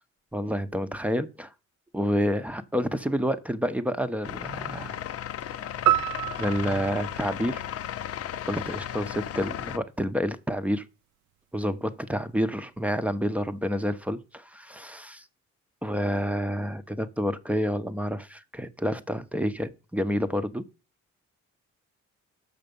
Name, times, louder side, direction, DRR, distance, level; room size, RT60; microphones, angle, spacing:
voice 1, 0.3-1.5 1.9-5.0 5.5-5.7 6.4-7.6 8.5-10.8 11.5-15.2 15.8-20.6, equal, 5° right, 0.8 m, -29 dB
sound 1, 4.2-9.8, left 10 dB, 50° left, 0.6 m, -35 dB
sound 2, 5.9-8.3, right 14 dB, 70° right, 0.5 m, -28 dB
6.8 x 5.9 x 5.3 m
cardioid pair, 90°, 30 cm